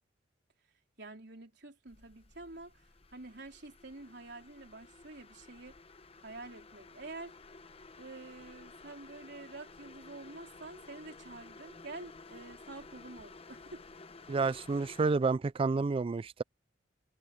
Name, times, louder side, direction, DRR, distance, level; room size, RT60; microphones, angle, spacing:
voice 1, 1.0-2.8 3.1-5.7 6.2-7.4 8.0-13.8, right 2 dB, 65° right, 4.2 m, -48 dB
sound 1, 1.9-15.1, left 3 dB, 35° left, 0.9 m, -53 dB
voice 2, 14.3-16.4, right 4 dB, 30° right, 0.3 m, -30 dB
head